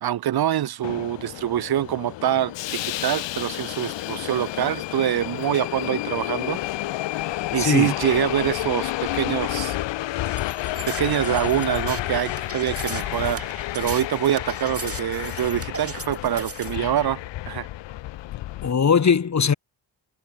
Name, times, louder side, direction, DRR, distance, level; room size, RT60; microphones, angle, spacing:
voice 1, 0.0-6.6 7.5-9.8 10.9-13.5 13.7-17.7, right 11 dB, 60° right, 0.8 m, -25 dB
Subway metro underground, 0.8-18.7, left 15 dB, 80° left, 0.8 m, -30 dB
voice 2, 7.6-7.9 18.6-19.5, left 6 dB, 40° left, 1.3 m, -19 dB
sound 1, 10.1-16.8, right 4 dB, 30° right, 2.3 m, -38 dB
supercardioid pair, 50°, 43 cm